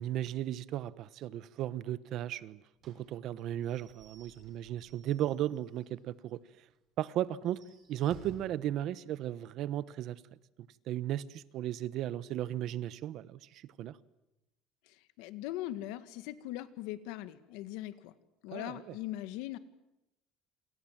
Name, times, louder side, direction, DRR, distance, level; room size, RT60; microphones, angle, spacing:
voice 1, 0.0-6.4 7.0-7.6 7.9-10.2 10.9-14.0 18.5-18.9, right 12 dB, 55° right, 1.1 m, -35 dB
Slam / Squeak / Wood, 2.8-6.0 6.3-6.4 6.7-6.8 7.3-8.7, right 5 dB, 40° right, 6.6 m, -56 dB
voice 2, 14.9-18.1 18.4-19.6, left 14 dB, 90° left, 1.9 m, -40 dB
28.5 x 27.5 x 7.5 m
cardioid pair, 150°, 0 cm